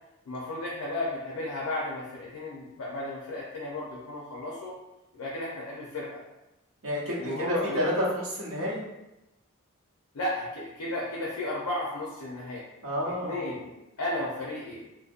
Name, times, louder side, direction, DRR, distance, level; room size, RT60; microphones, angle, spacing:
voice 1, 0.3-4.7 5.1-6.2 7.2-7.8 10.1-12.6 13.2-13.7 14.0-14.8, left 1 dB, 75° left, -4 dB, 0.5 m, -34 dB
voice 2, 6.8-8.8 12.8-13.4, equal, 65° right, -6 dB, 0.8 m, -29 dB
2.6 x 2.1 x 2.4 m, 0.95 s
head